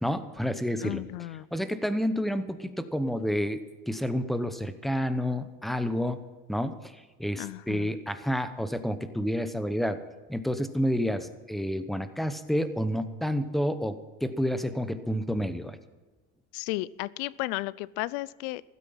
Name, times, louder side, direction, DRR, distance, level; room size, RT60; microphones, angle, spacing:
voice 1, 0.0-1.0 1.5-6.2 6.5-10.0 10.3-15.8, equal, ahead, 11 dB, 0.9 m, -29 dB
voice 2, 0.8-1.5 7.4-8.0 16.5-18.6, left 19 dB, 75° left, 22 dB, 0.6 m, -34 dB
15.5 x 12.5 x 5.7 m, 1.3 s
supercardioid pair, 130°, 31 cm